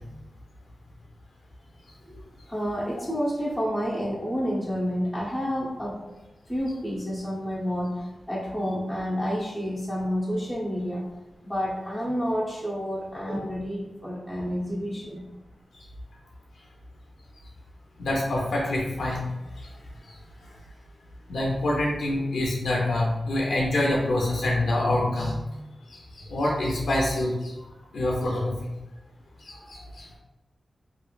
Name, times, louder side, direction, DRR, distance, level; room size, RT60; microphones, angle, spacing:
voice 1, 2.5-5.9 6.5-11.0 11.4-15.2, equal, ahead, -8 dB, 0.7 m, -29 dB
voice 2, 18.0-19.3 19.6-19.7 21.3-25.6 25.9-27.5 27.9-28.7 29.4-30.1, left 1 dB, 85° left, -3 dB, 0.5 m, -26 dB
2.9 x 2.5 x 2.3 m, 1.0 s
cardioid pair, 70°, 0 cm